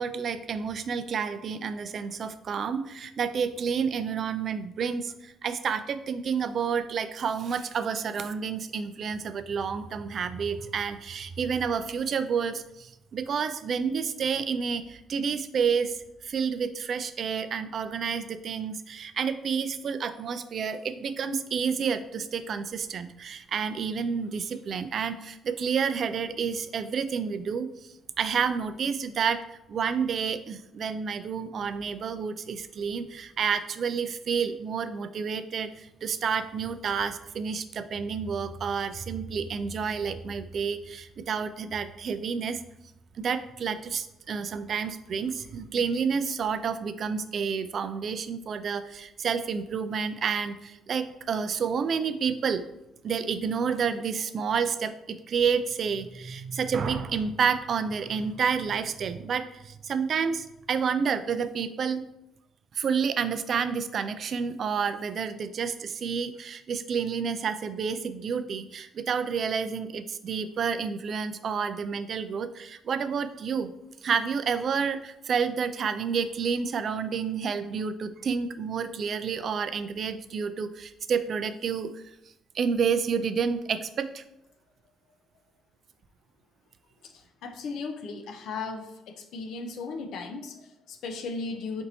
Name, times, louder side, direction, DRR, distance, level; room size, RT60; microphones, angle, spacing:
voice 1, 0.0-16.0 16.2-27.7 28.2-42.6 43.2-52.6 53.0-62.0 62.8-73.7 74.0-81.9 82.5-84.2, right 6 dB, 55° right, 11 dB, 0.3 m, -29 dB
voice 2, 87.0-91.8, left 4 dB, 75° left, 5 dB, 0.5 m, -36 dB
4.4 x 2.7 x 4.0 m, 0.87 s
supercardioid pair, 70°, 0 cm